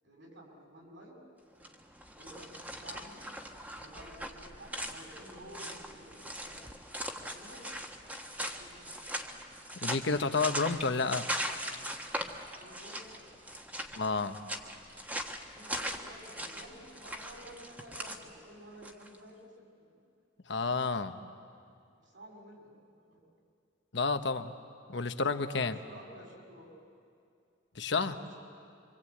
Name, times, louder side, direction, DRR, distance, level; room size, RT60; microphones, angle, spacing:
voice 1, 0.0-1.2 2.1-3.3 3.7-6.5 7.2-7.6 8.6-9.0 12.5-13.4 15.5-19.9 22.0-22.8 23.1-23.3 25.4-26.7 27.9-28.4, right 1 dB, 65° right, 0 dB, 7.0 m, -52 dB
sound 1, 1.5-19.2, equal, 10° right, 1.4 m, -40 dB
voice 2, 9.8-11.3 13.9-14.4 20.5-21.2 23.9-24.5 24.9-25.7 27.7-28.1, left 4 dB, 60° left, 8 dB, 1.1 m, -30 dB
27.0 x 25.0 x 8.5 m, 2.4 s
head